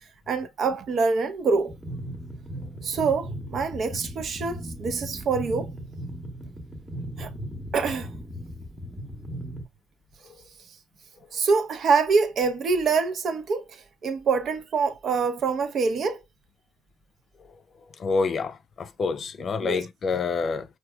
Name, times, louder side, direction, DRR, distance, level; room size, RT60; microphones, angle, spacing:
voice 1, 0.3-1.7 2.8-5.7 7.2-7.3 7.7-8.1 11.3-16.2 19.6-19.8, right 4 dB, 60° right, 0.6 m, -25 dB
sound 1, 1.7-9.7, equal, 20° right, 0.9 m, -37 dB
voice 2, 18.0-20.7, left 4 dB, 50° left, 0.4 m, -27 dB
4.6 x 2.3 x 2.2 m
cardioid pair, 90°, 0 cm